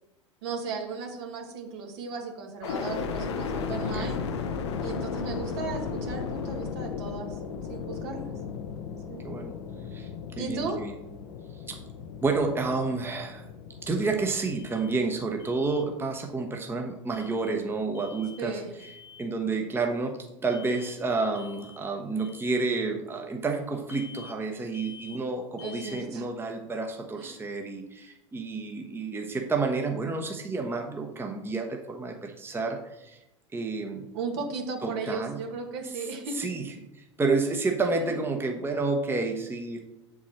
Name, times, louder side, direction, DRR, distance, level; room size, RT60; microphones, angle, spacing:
voice 1, 0.4-4.2 4.8-7.4 7.7-8.3 9.1-9.3 10.4-10.8 18.4-18.7 25.6-26.3 27.2-27.4 34.1-36.4 38.0-38.1, right 4 dB, 60° right, 2 dB, 1.6 m, -36 dB
sound 1, 2.6-16.6 17.1-17.9, left 5 dB, 65° left, 0.8 m, -36 dB
voice 2, 9.2-9.5 9.9-10.1 10.4-10.9 11.5-11.8 12.2-13.5 13.8-18.9 19.2-33.2 33.5-34.1 34.8-35.4 35.9-36.1 36.3-39.8, right 3 dB, 15° right, 3 dB, 1.0 m, -30 dB
Alarm, 14.5-15.0 15.4-15.8 17.1-17.6 17.9-18.4 18.8-19.3 20.5-21.0 21.3-21.8 22.2-22.6 23.9-24.4 24.7-25.2 25.6-26.1, left 7 dB, 45° left, 1.2 m, -48 dB
7.3 x 4.7 x 4.3 m, 0.90 s
figure-of-eight pair, 75°, 15 cm